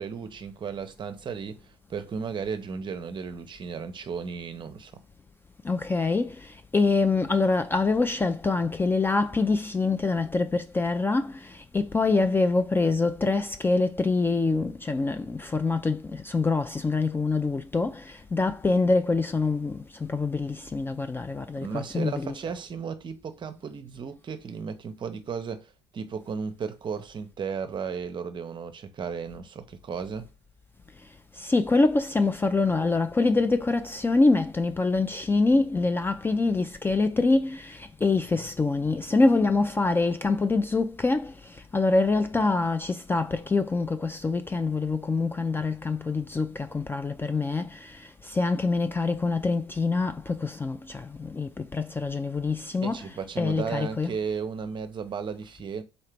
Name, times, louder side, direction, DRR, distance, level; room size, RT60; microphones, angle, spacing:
voice 1, 0.0-4.9 21.6-30.3 52.8-55.8, right 6 dB, 35° right, 0.6 m, -35 dB
voice 2, 5.6-6.4 6.7-22.3 31.4-41.3 41.7-48.0 48.2-53.0 53.4-54.1, left 3 dB, 15° left, 0.3 m, -25 dB
4.1 x 2.8 x 3.3 m
hypercardioid pair, 65°, 14 cm